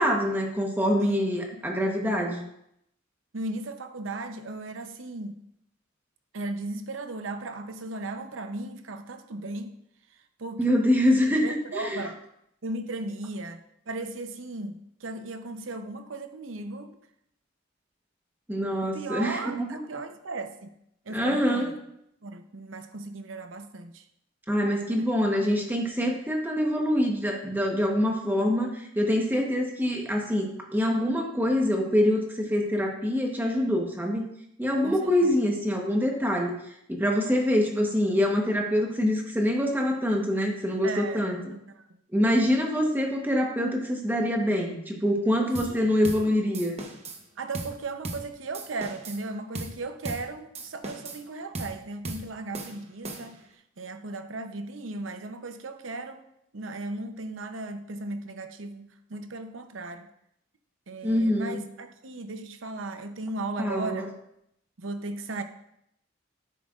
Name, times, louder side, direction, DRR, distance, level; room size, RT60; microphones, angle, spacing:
voice 1, 0.0-2.4 10.6-12.0 18.5-19.8 21.1-21.7 24.5-34.2 34.6-36.6 36.9-41.4 42.1-46.8 61.0-61.6 63.6-64.1, equal, 10° right, 1 dB, 1.1 m, -25 dB
voice 2, 1.0-1.6 3.3-5.4 6.3-9.7 10.4-10.6 11.4-12.2 12.6-17.0 18.8-20.7 21.0-21.7 22.2-24.0 25.0-25.1 34.8-35.3 40.8-42.0 45.6-46.3 47.4-56.3 56.5-60.1 60.9-64.1 64.8-65.4, right 2 dB, 85° right, 7 dB, 0.7 m, -36 dB
sound 1, 45.6-45.8 46.0-46.3 46.5-47.2 47.5-47.8 48.0-48.3 48.5-49.2 49.6-49.8 50.1-50.3 50.6-51.2 51.6-51.8 52.1-52.3 52.5-53.5, right 2 dB, 35° right, 1.0 m, -37 dB
9.9 x 8.0 x 2.5 m, 0.76 s
head